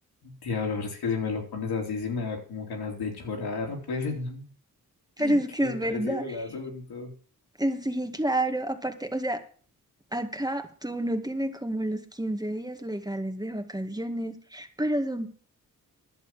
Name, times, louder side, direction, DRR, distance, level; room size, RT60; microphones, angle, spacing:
voice 1, 0.2-4.4 5.2-7.1, left 4 dB, 90° left, 1 dB, 3.4 m, -32 dB
voice 2, 5.2-6.2 7.6-9.4 10.1-15.3, right 1 dB, 10° right, 6 dB, 2.0 m, -29 dB
11.0 x 7.1 x 7.5 m, 0.42 s
cardioid pair, 55°, 37 cm